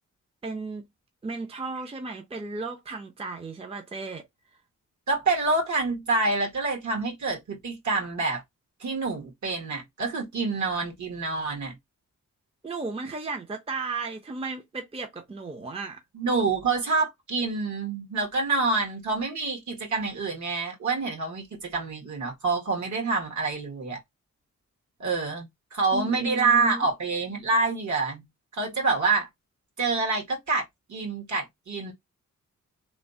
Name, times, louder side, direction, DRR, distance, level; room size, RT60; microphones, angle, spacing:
voice 1, 0.4-0.9 1.2-4.2 12.6-16.0 25.9-26.9, right 3 dB, 20° right, 0.5 m, -35 dB
voice 2, 5.1-8.4 8.8-11.7 16.1-24.0 25.0-28.3 28.5-29.3 29.8-30.6 30.9-31.9, right 3 dB, 65° right, 1.5 m, -27 dB
3.2 x 2.1 x 2.6 m
wide cardioid pair, 105°, 32 cm